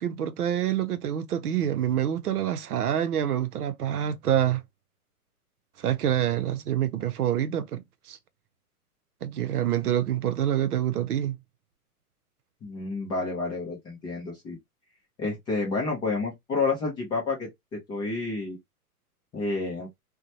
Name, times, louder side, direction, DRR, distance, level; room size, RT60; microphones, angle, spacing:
voice 1, 0.0-4.6 5.8-8.2 9.2-11.4, right 10 dB, 80° right, 0.7 m, -26 dB
voice 2, 12.6-14.6 15.2-18.6 19.3-19.9, left 3 dB, 10° left, 0.4 m, -30 dB
2.9 x 2.2 x 2.6 m
hypercardioid pair, 130°, 45 cm